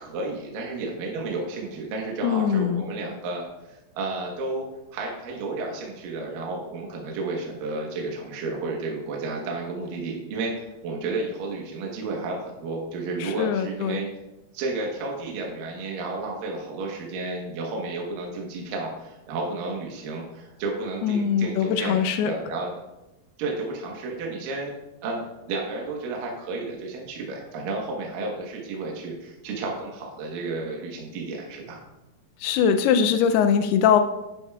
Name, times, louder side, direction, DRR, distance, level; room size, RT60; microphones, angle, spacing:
voice 1, 0.0-4.6 4.9-14.1 14.5-22.8 23.4-24.7 25.0-31.8, right 3 dB, 65° right, -1 dB, 2.7 m, -32 dB
voice 2, 2.2-2.8 13.2-14.0 21.0-22.3 32.4-34.0, left 7 dB, 85° left, 8 dB, 2.5 m, -22 dB
10.5 x 10.5 x 2.3 m, 0.99 s
omnidirectional pair, 4.6 m